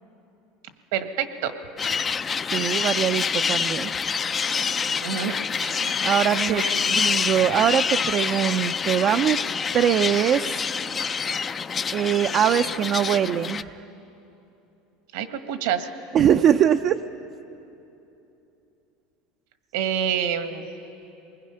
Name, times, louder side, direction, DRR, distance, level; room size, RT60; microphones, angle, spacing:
voice 1, 0.9-1.5 5.0-6.0 6.3-6.9 15.1-15.9 19.7-20.6, right 8 dB, 80° right, 8 dB, 1.5 m, -28 dB
sound 1, 1.8-13.6, left 6 dB, 25° left, 0.4 m, -26 dB
voice 2, 2.5-4.1 6.0-9.4 9.7-10.6 11.9-13.8 16.1-17.0, right 9 dB, 40° right, 6 dB, 0.5 m, -22 dB
27.5 x 20.5 x 5.6 m, 2.9 s
supercardioid pair, 135°, 0 cm